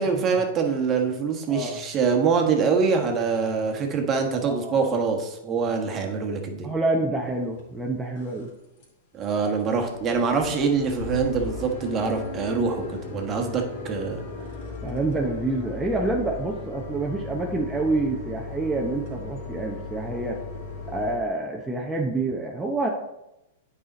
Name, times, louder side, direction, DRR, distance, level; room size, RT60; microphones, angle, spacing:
voice 1, 0.0-6.7 9.1-14.2, right 5 dB, 30° right, 3 dB, 1.4 m, -24 dB
voice 2, 1.5-1.8 4.4-4.7 6.6-8.5 14.8-20.4 20.9-22.9, right 2 dB, 10° right, -2 dB, 0.9 m, -27 dB
sound 1, 7.5-7.6 8.1-8.5 8.8-8.9 9.2-9.3 9.6-21.2, left 3 dB, 55° left, 2.9 m, -36 dB
8.8 x 4.9 x 4.1 m, 0.88 s
hypercardioid pair, 115°, 0 cm